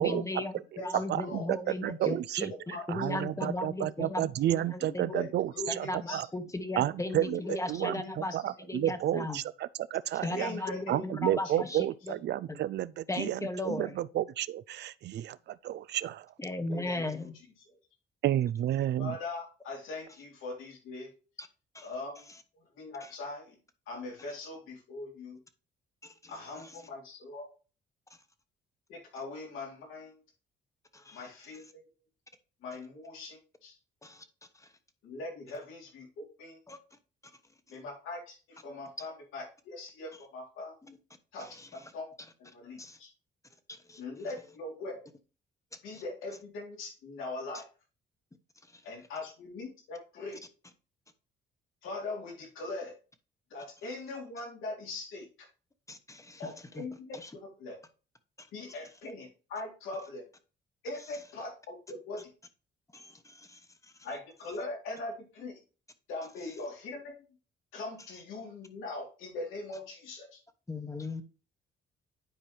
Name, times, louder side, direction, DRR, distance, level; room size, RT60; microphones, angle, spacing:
voice 1, 0.0-5.3 5.7-8.3 8.7-9.4 10.2-12.2 12.5-12.6 13.1-14.0 16.4-17.3 21.4-21.5 21.7-21.9 23.0-23.1 26.0-26.3 26.6-26.7 30.9-31.2 34.0-34.2 34.5-34.7 36.7-36.8 40.9-41.0 41.4-41.7 42.8-43.0 43.7-44.0 45.9-46.0 48.7-48.8 55.9-56.8 57.2-57.3 58.4-58.5 62.9-63.9 70.7-71.2, left 2 dB, 15° left, 1.1 m, -37 dB
voice 2, 1.1-1.6 1.8-2.5 2.9-5.5 5.8-5.9 6.1-6.3 6.8-7.4 7.7-7.9 8.3-9.4 9.9-10.5 10.9-13.4 13.7-16.3 18.2-19.1, right 12 dB, 60° right, 0.4 m, -31 dB
voice 3, 4.8-5.3 5.5-6.3 7.3-8.1 10.4-11.8 16.7-17.3 19.0-21.1 21.8-22.3 22.5-23.6 23.9-25.4 26.3-27.5 28.9-30.2 31.1-31.8 32.6-33.8 35.0-36.6 37.7-40.7 41.3-42.1 42.4-43.1 44.0-45.1 45.8-47.6 48.8-50.4 51.8-53.0 53.5-55.3 56.4-57.8 58.5-60.2 60.8-62.2 64.0-65.6 66.1-67.2 67.7-70.4, left 2 dB, 90° left, 3.6 m, -41 dB
10.0 x 4.5 x 3.3 m
cardioid pair, 90°, 20 cm